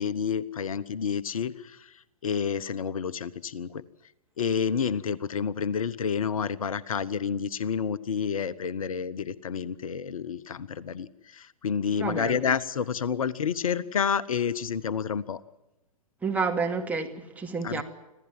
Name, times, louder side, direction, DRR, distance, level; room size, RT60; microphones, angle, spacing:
voice 1, 0.0-3.8 4.4-15.4 17.6-17.8, left 7 dB, 65° left, 1.0 m, -29 dB
voice 2, 11.9-12.4 16.2-17.8, right 4 dB, 10° right, 2.5 m, -29 dB
25.5 x 16.5 x 7.7 m
figure-of-eight pair, 110°, 19 cm